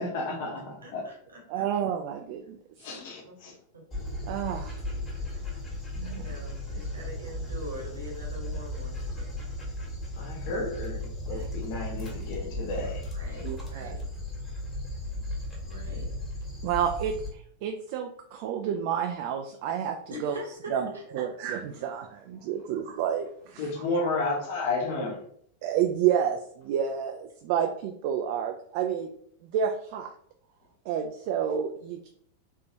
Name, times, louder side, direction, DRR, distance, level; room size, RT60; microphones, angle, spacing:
voice 1, 0.0-1.0 2.8-3.5 10.2-13.4 23.6-25.2, left 3 dB, 50° left, 0 dB, 1.1 m, -32 dB
voice 2, 0.8-1.7 2.9-3.3 3.7-4.0 4.3-4.4 5.0-5.6 6.0-9.4 13.1-14.1 15.6-16.1 20.1-21.3, equal, 70° right, 0 dB, 1.1 m, -43 dB
voice 3, 1.5-2.6 4.3-4.8 6.0-6.2 11.4-11.5 13.4-13.9 16.6-17.1 17.6-20.3 20.7-20.9 21.1-23.6 25.6-29.1 29.5-30.1 30.9-32.1, right 9 dB, 45° right, 4 dB, 0.3 m, -29 dB
Dog, 3.9-17.3, left 1 dB, 20° left, 1.4 m, -36 dB
3.6 x 2.9 x 2.8 m, 0.64 s
figure-of-eight pair, 90°, 0 cm